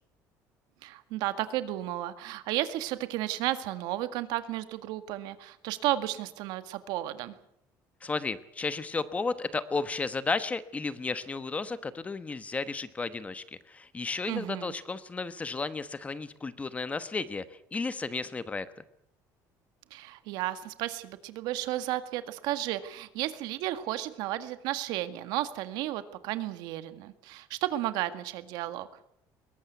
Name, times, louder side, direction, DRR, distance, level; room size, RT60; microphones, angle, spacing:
voice 1, 0.8-7.3 14.3-14.7 19.9-28.9, right 14 dB, 85° right, 11 dB, 1.8 m, -33 dB
voice 2, 8.0-18.7, left 4 dB, 20° left, 13 dB, 1.2 m, -33 dB
22.0 x 18.5 x 8.1 m, 0.75 s
cardioid pair, 135°, 7 cm